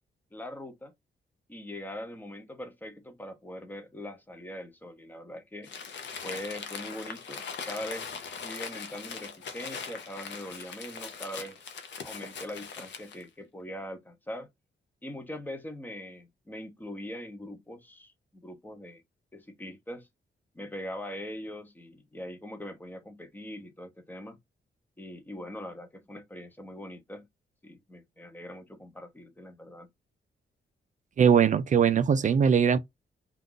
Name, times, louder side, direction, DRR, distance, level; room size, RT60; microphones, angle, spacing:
voice 1, 0.3-0.9 1.5-5.7 6.2-11.7 12.0-14.5 15.0-19.0 19.3-20.1 20.5-24.4 25.0-27.3 27.6-29.9, left 1 dB, 10° left, 0.6 m, -42 dB
Crumpling crinkling, 5.6-13.2, left 6 dB, 70° left, 0.6 m, -40 dB
voice 2, 31.2-32.8, right 7 dB, 40° right, 0.4 m, -21 dB
2.5 x 2.3 x 3.5 m
wide cardioid pair, 150°, 19 cm